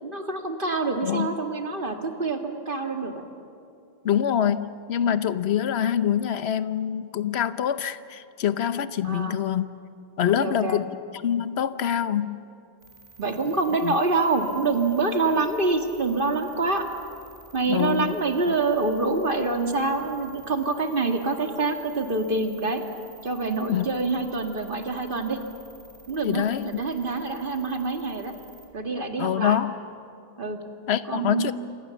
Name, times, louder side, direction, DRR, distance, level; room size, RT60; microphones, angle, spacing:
voice 1, 0.0-3.2 9.0-9.4 10.4-10.8 13.2-16.9 17.5-22.8 23.2-25.4 26.1-28.3 28.7-29.6 30.4-30.6 31.1-31.5, right 3 dB, 55° right, 4 dB, 2.1 m, -26 dB
voice 2, 4.0-9.7 10.2-10.9 11.2-12.4 13.8-14.0 17.7-18.1 23.7-23.9 26.2-26.8 29.2-29.7 30.9-31.5, left 9 dB, 80° left, 13 dB, 1.1 m, -25 dB
sound 1, 12.8-28.7, right 2 dB, 40° left, 3.9 m, -51 dB
28.0 x 26.0 x 7.1 m, 2.7 s
omnidirectional pair, 1.1 m